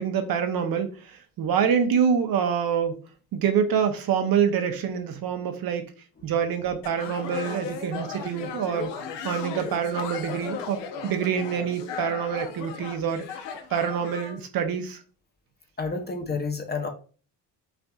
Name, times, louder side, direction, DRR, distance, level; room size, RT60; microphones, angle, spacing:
voice 1, 0.0-3.0 3.3-5.8 6.2-8.9 9.2-13.4 13.7-15.0, right 7 dB, 55° right, 0.7 m, -26 dB
sound 1, 6.8-14.4, left 6 dB, 80° left, 0.8 m, -36 dB
voice 2, 15.8-16.9, left 4 dB, 25° left, 0.7 m, -29 dB
5.8 x 2.5 x 2.3 m
cardioid pair, 90°, 42 cm